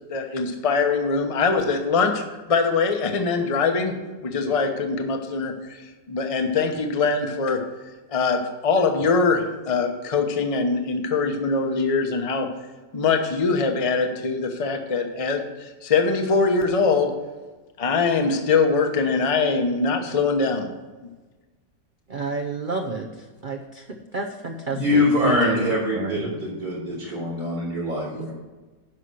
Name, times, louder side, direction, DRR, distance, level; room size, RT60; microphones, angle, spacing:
voice 1, 0.1-4.0 4.2-5.6 6.1-7.7 8.1-12.5 12.9-17.2 17.8-20.7, left 4 dB, 25° left, 4 dB, 0.8 m, -22 dB
voice 2, 22.1-23.1 23.4-25.6 25.9-26.2 28.1-28.3, right 3 dB, 55° right, 3 dB, 0.5 m, -31 dB
voice 3, 24.7-28.3, left 1 dB, 75° right, -6 dB, 4.4 m, -23 dB
10.5 x 5.8 x 6.4 m, 1.2 s
omnidirectional pair, 1.9 m